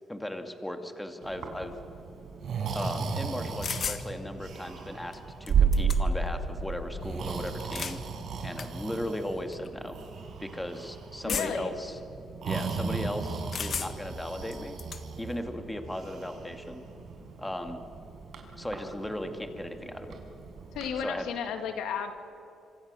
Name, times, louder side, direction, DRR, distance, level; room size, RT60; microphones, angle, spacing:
voice 1, 0.1-1.7 2.7-8.0 8.4-10.0 10.4-12.0 12.4-14.8 15.2-16.8 17.4-17.8 18.6-20.2 21.0-21.3, left 1 dB, 10° left, 6 dB, 2.3 m, -36 dB
Breathing, 1.2-20.9, right 5 dB, 65° right, 4.8 m, -34 dB
sound 1, 3.6-4.0 5.1-5.2 5.5-6.3 7.5-8.0 8.6-8.7 9.5-9.7 11.3-11.7 13.5-14.1 14.5-15.0, left 6 dB, 50° left, 1.5 m, -34 dB
voice 2, 11.2-11.8 20.7-22.1, left 7 dB, 85° left, 7 dB, 2.0 m, -33 dB
26.0 x 25.5 x 6.9 m, 2.8 s
cardioid pair, 90°, 0 cm